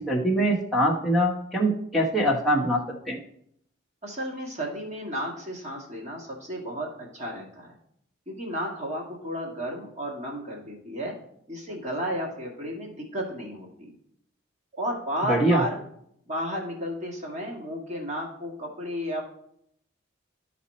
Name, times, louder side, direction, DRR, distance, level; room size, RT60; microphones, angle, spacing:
voice 1, 0.1-2.8 3.1-3.2 15.3-15.6, right 1 dB, ahead, -2 dB, 1.2 m, -23 dB
voice 2, 4.0-7.7 8.3-11.2 11.5-13.9 14.7-15.8 16.3-19.2, equal, 35° right, -2 dB, 1.9 m, -33 dB
12.0 x 4.2 x 4.2 m, 0.71 s
head